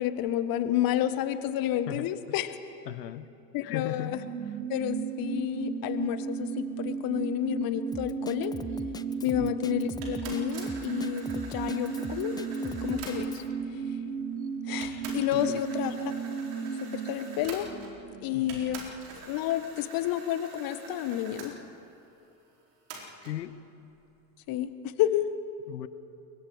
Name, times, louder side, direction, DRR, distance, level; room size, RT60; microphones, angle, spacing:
voice 1, 0.0-2.5 3.5-4.2 4.7-8.5 9.2-13.4 14.7-16.1 16.5-16.6 17.0-17.7 18.2-18.9 19.3-21.5 24.5-25.3, left 12 dB, 45° left, 11 dB, 1.4 m, -30 dB
voice 2, 1.9-2.5 2.9-3.3 3.6-4.2 4.4-4.5 9.3-9.5 15.3-15.6 18.3-18.6 23.2-23.5 25.7-25.9, left 12 dB, 70° left, 14 dB, 1.1 m, -38 dB
sound 1, 3.7-18.9 19.2-19.3, right 6 dB, 85° right, 1.1 m, -35 dB
Drum kit, 7.9-13.5, left 5 dB, 10° left, 0.4 m, -42 dB
sound 2, 10.0-13.6 14.3-14.4 14.8-18.1 18.5-21.5 22.9-23.4, right 4 dB, 65° right, 4.7 m, -45 dB
29.0 x 23.0 x 5.1 m, 2.9 s
figure-of-eight pair, 80°, 50 cm